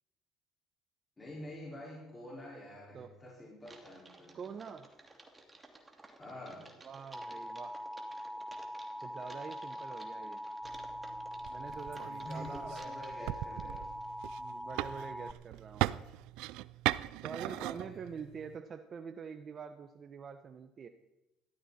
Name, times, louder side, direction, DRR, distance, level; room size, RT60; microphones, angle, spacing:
voice 1, 1.2-4.4 6.2-6.6 11.9-13.9 17.4-18.1, left 1 dB, 20° left, -5 dB, 5.0 m, -47 dB
Typing, 3.6-14.1, right 2 dB, 20° right, 2.7 m, -56 dB
voice 2, 4.3-4.9 6.8-7.8 9.0-10.4 11.5-12.7 14.4-16.0 17.2-20.9, right 6 dB, 45° right, 7 dB, 1.0 m, -45 dB
Alarm, 7.1-15.3, equal, ahead, 0.4 m, -43 dB
sound 1, 10.6-18.6, right 18 dB, 80° right, 0.4 m, -39 dB
17.0 x 14.0 x 4.3 m, 0.96 s
supercardioid pair, 85°, 0 cm